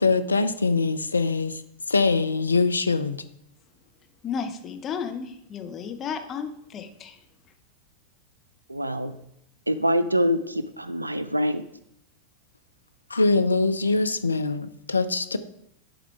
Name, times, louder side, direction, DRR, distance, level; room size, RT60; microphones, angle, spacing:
voice 1, 0.0-1.6 1.9-3.2 13.1-15.4, left 3 dB, 75° left, 11 dB, 0.4 m, -23 dB
voice 2, 4.2-7.2, left 6 dB, 30° left, 7 dB, 0.7 m, -33 dB
voice 3, 8.7-9.2 9.7-11.6, equal, 85° right, 14 dB, 0.4 m, -25 dB
10.5 x 3.7 x 4.6 m, 0.75 s
figure-of-eight pair, 90°, 0 cm